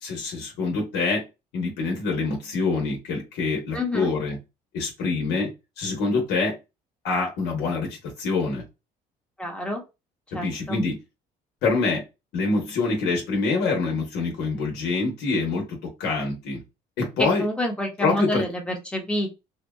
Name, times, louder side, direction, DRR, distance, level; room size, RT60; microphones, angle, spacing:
voice 1, 0.0-1.2 1.5-4.4 4.7-6.6 7.0-8.6 10.3-11.0 11.6-12.0 12.3-16.6 17.0-17.4 18.0-18.4, left 3 dB, 85° left, 0 dB, 1.0 m, -25 dB
voice 2, 3.7-4.1 9.4-9.8 10.3-10.8 17.2-19.3, left 1 dB, 5° left, 1 dB, 0.9 m, -28 dB
2.7 x 2.2 x 2.3 m, 0.25 s
cardioid pair, 110°, 17 cm